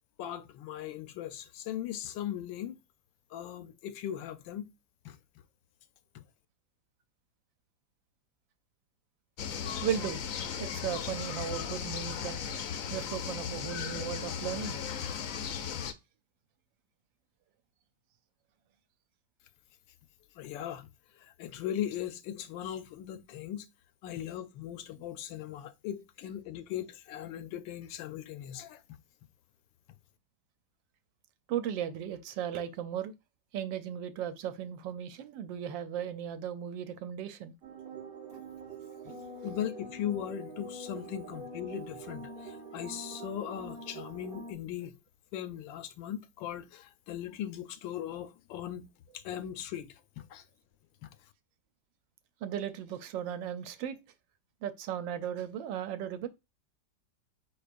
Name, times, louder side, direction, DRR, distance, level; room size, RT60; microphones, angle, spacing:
voice 1, 0.2-2.8 3.3-4.7 5.0-5.2 6.1-6.2 20.4-20.9 21.2-23.7 24.0-28.8 39.4-44.9 45.3-48.9 49.1-50.4 51.0-51.1, left 11 dB, 90° left, 1.3 m, -39 dB
sound 1, 9.4-15.9, left 7 dB, 70° left, 0.8 m, -36 dB
voice 2, 9.8-10.2 10.6-12.4 12.9-14.8 31.5-33.1 33.5-37.5 52.4-54.0 54.6-56.3, right 9 dB, 85° right, 1.3 m, -36 dB
sound 2, 37.6-44.5, right 2 dB, 45° right, 0.7 m, -44 dB
4.6 x 4.6 x 2.5 m
omnidirectional pair, 2.0 m